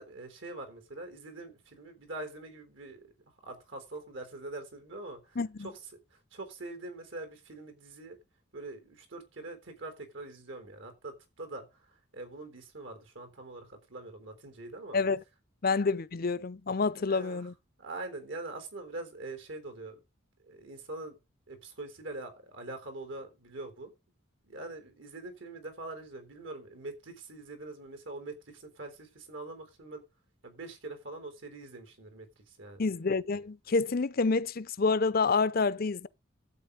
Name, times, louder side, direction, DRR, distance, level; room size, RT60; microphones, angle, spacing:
voice 1, 0.0-3.1 3.4-8.2 8.5-11.8 12.1-15.0 17.1-17.5 17.8-20.0 20.4-21.2 21.5-23.9 24.4-30.0 30.4-32.8, right 2 dB, 75° right, 3.8 m, -44 dB
voice 2, 5.4-5.7 14.9-15.2 15.6-17.5 32.8-36.1, left 4 dB, 50° left, 0.6 m, -28 dB
12.0 x 8.3 x 5.1 m
head